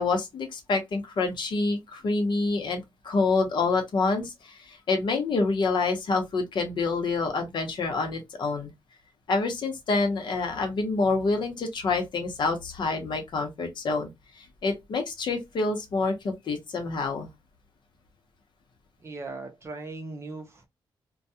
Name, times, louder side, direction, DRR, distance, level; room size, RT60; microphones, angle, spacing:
voice 1, 0.0-8.7 9.3-14.1 14.4-17.3, left 3 dB, 60° left, 0.8 m, -27 dB
voice 2, 19.0-20.7, right 3 dB, 30° right, 0.6 m, -38 dB
2.3 x 2.2 x 2.7 m
wide cardioid pair, 155°, 9 cm